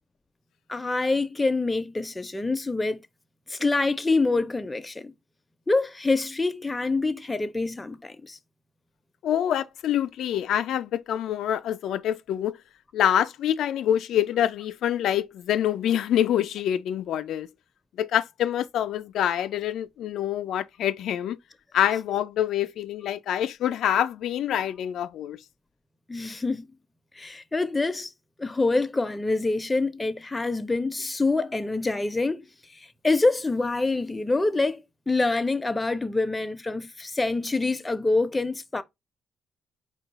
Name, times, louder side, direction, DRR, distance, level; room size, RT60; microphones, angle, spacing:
voice 1, 0.7-3.0 3.5-5.1 5.7-8.4 26.1-26.7 27.2-28.1 28.4-32.5 33.0-38.8, left 3 dB, 15° left, 0.5 m, -26 dB
voice 2, 9.2-12.6 12.9-17.5 18.0-21.4 21.7-25.4, left 10 dB, 75° left, 0.3 m, -26 dB
4.7 x 2.2 x 3.9 m
cardioid pair, 90°, 0 cm